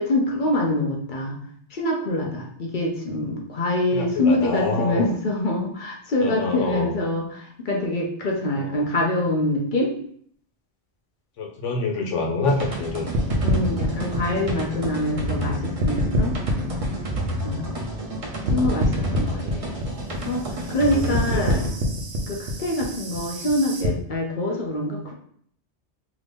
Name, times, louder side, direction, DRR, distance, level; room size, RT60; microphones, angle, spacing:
voice 1, 0.0-1.4 1.7-9.9 13.4-16.4 17.4-17.8 18.5-19.6 20.2-21.7 22.3-25.1, left 1 dB, 50° left, 0 dB, 0.7 m, -25 dB
voice 2, 3.9-5.1 6.2-6.9 8.6-8.8 11.4-13.1 15.1-15.2 17.7-17.8 19.4-19.6 21.0-21.4, left 3 dB, 90° left, -1 dB, 1.1 m, -27 dB
sound 1, 12.5-21.7, right 1 dB, 40° right, 0.5 m, -30 dB
sound 2, 13.1-15.5 15.8-18.2 18.5-23.9, equal, 90° right, 1.0 m, -26 dB
2.9 x 2.6 x 3.4 m, 0.63 s
omnidirectional pair, 1.2 m